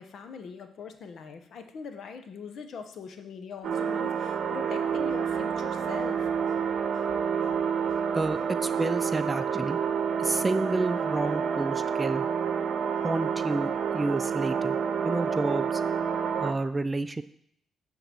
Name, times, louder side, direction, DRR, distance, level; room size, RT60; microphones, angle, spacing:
voice 1, 0.0-6.6 6.9-7.1 7.4-7.5 7.9-8.0, left 5 dB, 65° left, 7 dB, 0.9 m, -42 dB
sound 1, 3.6-16.5, right 7 dB, 65° right, 0.8 m, -28 dB
voice 2, 8.1-9.8 10.2-12.2 13.0-14.8 15.0-15.8 16.4-17.2, right 2 dB, 20° right, 12 dB, 0.4 m, -30 dB
9.0 x 3.9 x 6.9 m, 0.68 s
cardioid pair, 90°, 0 cm